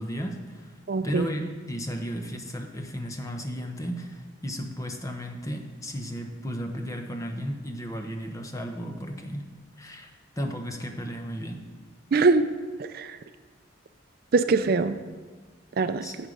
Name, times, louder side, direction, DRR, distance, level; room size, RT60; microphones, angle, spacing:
voice 1, 0.0-0.8 1.0-9.5 9.8-10.1 10.4-11.6 16.0-16.2, equal, 15° left, 4 dB, 0.9 m, -34 dB
voice 2, 0.9-1.3 12.1-12.4 12.8-13.2 14.3-15.0 15.8-16.0, right 4 dB, 50° right, 11 dB, 0.4 m, -22 dB
11.0 x 7.4 x 5.2 m, 1.4 s
head